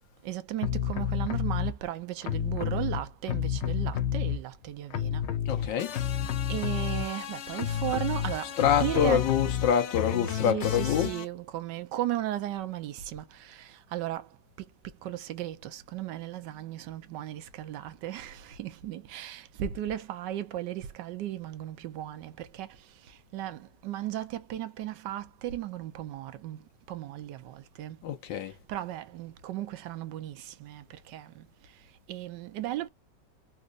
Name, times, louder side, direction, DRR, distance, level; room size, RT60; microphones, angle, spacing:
voice 1, 0.2-5.2 6.5-8.5 8.8-9.3 10.3-14.3 15.0-22.8 23.1-28.0 28.7-31.5 32.1-32.9, right 13 dB, 75° right, 1.2 m, -36 dB
sound 1, 0.6-1.7 2.2-4.6 4.9-11.3, left 9 dB, 70° left, 0.6 m, -30 dB
voice 2, 5.5-6.0 8.6-11.1 28.0-28.5, left 9 dB, 85° left, 1.5 m, -26 dB
4.1 x 2.4 x 2.4 m
omnidirectional pair, 2.0 m